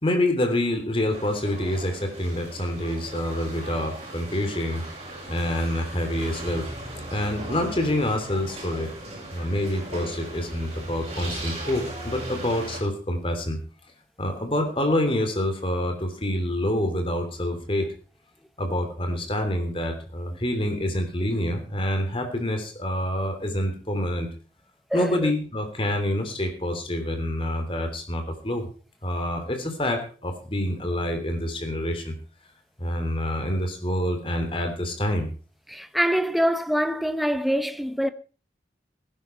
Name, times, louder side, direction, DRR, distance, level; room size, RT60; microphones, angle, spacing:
voice 1, 0.0-4.8 5.3-6.7 7.1-8.9 9.3-13.6 14.2-17.9 18.6-24.3 24.9-28.6 29.0-32.1 32.8-35.3, left 1 dB, 30° left, 3.3 m, -27 dB
sound 1, 1.1-12.8, right 1 dB, 35° right, 6.5 m, -38 dB
voice 2, 24.9-25.3 35.7-38.1, equal, ahead, 0.8 m, -24 dB
18.5 x 10.5 x 4.5 m
head